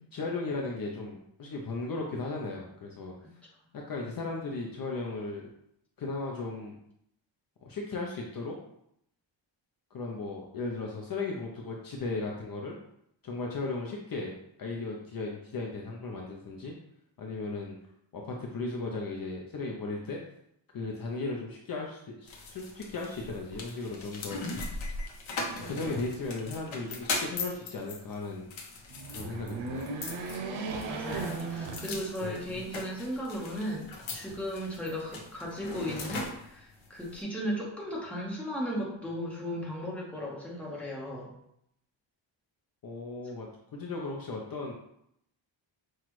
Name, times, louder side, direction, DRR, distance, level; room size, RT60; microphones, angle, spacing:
voice 1, 0.1-3.1 3.7-5.5 6.0-6.7 7.6-8.6 9.9-12.8 13.2-16.7 17.2-17.7 18.1-20.2 20.7-24.4 25.5-28.5 29.1-29.9 42.8-44.7, left 3 dB, 45° left, -1 dB, 0.7 m, -36 dB
sound 1, 22.3-37.2, left 3 dB, 85° left, 0.9 m, -40 dB
sound 2, 28.9-32.5 33.0-33.1 34.2-34.9, right 3 dB, 80° right, 0.7 m, -37 dB
voice 2, 30.8-41.3, equal, 5° left, -5 dB, 1.2 m, -36 dB
5.8 x 2.4 x 3.1 m, 0.75 s
cardioid pair, 120°, 47 cm